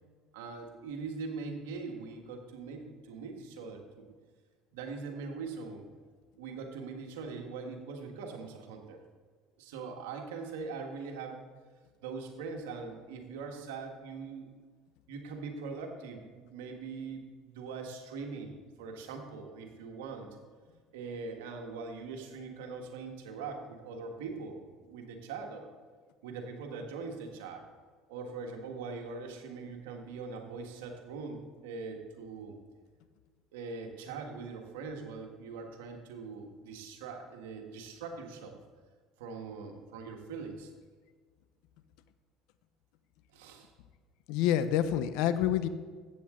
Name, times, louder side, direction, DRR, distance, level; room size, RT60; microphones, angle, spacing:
voice 1, 0.3-4.1 4.7-5.8 6.4-9.0 9.6-11.5 12.0-14.5 15.1-20.3 20.9-25.7 26.2-27.6 28.1-32.6 33.5-38.6 39.2-40.7 43.3-43.7, right 4 dB, 85° right, 3 dB, 1.6 m, -42 dB
voice 2, 44.3-45.7, left 11 dB, 75° left, 12 dB, 0.7 m, -27 dB
14.0 x 8.7 x 3.8 m, 1.5 s
supercardioid pair, 85°, 0 cm